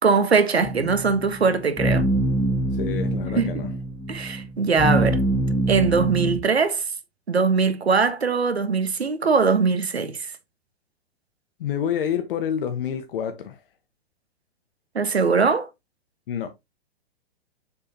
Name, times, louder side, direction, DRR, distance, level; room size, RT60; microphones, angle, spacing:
voice 1, 0.0-2.0 3.3-3.5 4.1-5.2 5.7-6.8 7.3-10.3 14.9-15.7, right 5 dB, 85° right, 1.2 m, -21 dB
sound 1, 0.7-6.4, right 1 dB, 10° left, 0.8 m, -25 dB
voice 2, 2.7-3.7 11.6-13.6 16.3-16.5, left 8 dB, 60° left, 1.1 m, -28 dB
7.0 x 4.8 x 2.8 m
figure-of-eight pair, 110°, 31 cm